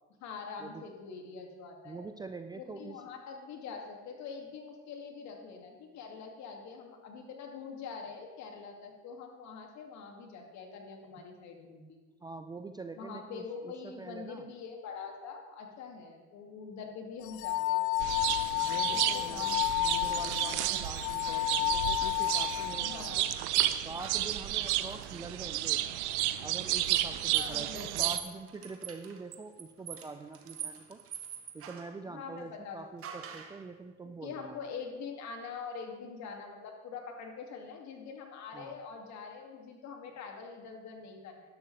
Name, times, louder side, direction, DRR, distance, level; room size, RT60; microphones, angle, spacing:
voice 1, 0.2-2.1 2.5-12.0 12.9-18.3 18.9-20.3 22.8-23.3 27.3-28.1 32.1-33.1 34.0-41.6, left 5 dB, 55° left, 2 dB, 2.4 m, -44 dB
voice 2, 1.8-3.0 12.2-14.4 18.6-19.5 19.8-23.3 23.7-25.8 26.4-31.0 31.5-34.5 38.5-38.8, right 3 dB, 10° right, 8 dB, 0.4 m, -45 dB
sound 1, 17.2-23.1, left 20 dB, 80° left, 0.5 m, -31 dB
sound 2, 18.0-28.2, right 14 dB, 85° right, 0.7 m, -32 dB
sound 3, 24.0-25.9 26.8-32.0 33.0-33.6, right 8 dB, 40° right, 1.4 m, -45 dB
13.0 x 11.0 x 3.3 m, 1.3 s
supercardioid pair, 100°, 34 cm